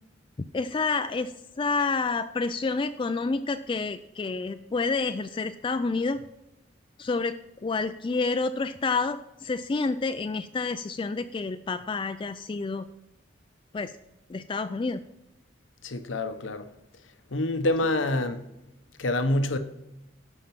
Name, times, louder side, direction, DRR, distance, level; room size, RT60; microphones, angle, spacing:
voice 1, 0.5-6.2 7.0-12.9 13.7-13.9 14.3-15.0, left 4 dB, 25° left, 0.3 m, -29 dB
voice 2, 15.8-16.7 17.3-18.5 19.0-19.6, left 1 dB, 85° left, 0.9 m, -26 dB
12.5 x 5.8 x 5.9 m
head